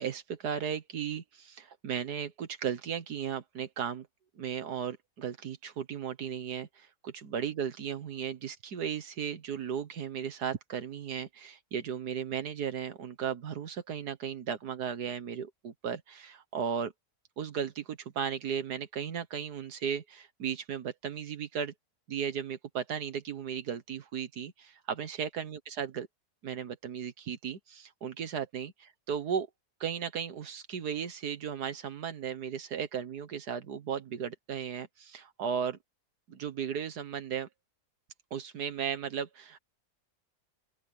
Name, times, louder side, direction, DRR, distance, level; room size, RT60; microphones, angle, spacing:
voice 1, 0.0-4.1 4.4-16.9 17.4-21.7 22.1-26.1 26.4-29.5 29.8-35.8 36.3-37.5 38.3-39.6, right 8 dB, 85° right, 1.8 m, -36 dB
open air
omnidirectional pair, 1.7 m